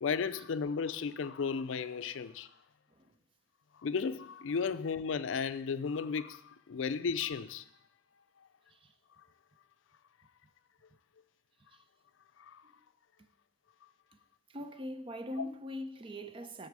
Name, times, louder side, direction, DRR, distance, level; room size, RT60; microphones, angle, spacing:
voice 1, 0.0-2.5 3.8-7.6 12.4-12.6, left 5 dB, 90° left, 0.4 m, -34 dB
voice 2, 14.5-16.7, equal, 30° right, 0.5 m, -42 dB
12.5 x 4.5 x 4.7 m
head